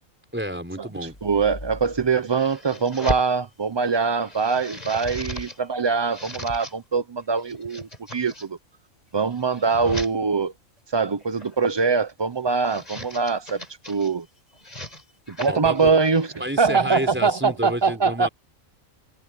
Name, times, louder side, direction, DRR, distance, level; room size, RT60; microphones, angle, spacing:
voice 1, 0.3-1.2 15.4-16.0 16.4-18.3, equal, 10° right, 4.0 m, -30 dB
sound 1, 1.1-3.3 3.8-5.6 5.9-6.7 7.3-8.5 9.1-10.1 11.2-11.6 12.4-14.1 14.5-16.4, left 1 dB, 30° left, 4.7 m, -37 dB
voice 2, 1.2-8.6 9.1-10.5 10.9-14.3 15.3-16.3 16.6-18.3, right 5 dB, 40° right, 0.3 m, -23 dB
omnidirectional pair, 1.4 m